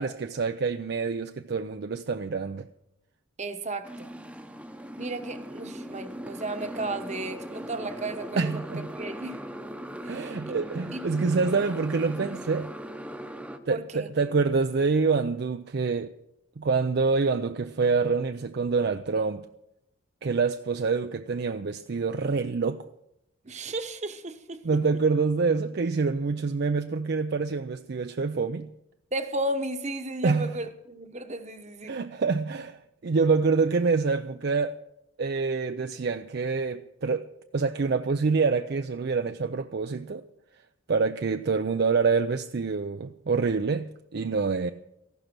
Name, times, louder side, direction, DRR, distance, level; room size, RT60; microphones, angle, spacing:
voice 1, 0.0-2.7 8.4-8.9 10.1-12.7 13.7-16.1 16.6-19.4 20.2-22.8 24.6-28.7 30.2-30.5 31.9-34.8 35.2-37.3 37.5-40.2 40.9-44.7, right 4 dB, 55° right, 0.5 m, -26 dB
voice 2, 3.4-4.1 5.0-8.6 9.0-9.4 10.0-10.5 10.9-11.1 13.7-14.1 23.4-24.6 29.1-32.0, right 2 dB, 35° right, 1.1 m, -34 dB
Motorcycle, 3.8-13.6, equal, 5° right, 0.8 m, -39 dB
15.0 x 11.5 x 6.1 m
head